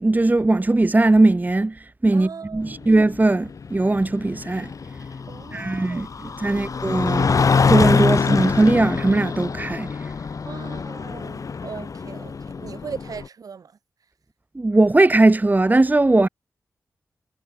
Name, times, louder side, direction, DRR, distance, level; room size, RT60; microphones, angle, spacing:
voice 1, 0.0-4.7 5.5-7.3 7.7-9.9 14.5-16.3, right 2 dB, 25° right, 1.0 m, -19 dB
voice 2, 2.1-2.9 5.3-6.0 6.4-6.8 10.4-13.8, right 6 dB, 75° right, 5.0 m, -39 dB
sound 1, 2.7-13.3, left 5 dB, 65° left, 1.2 m, -24 dB
cardioid pair, 45°, 6 cm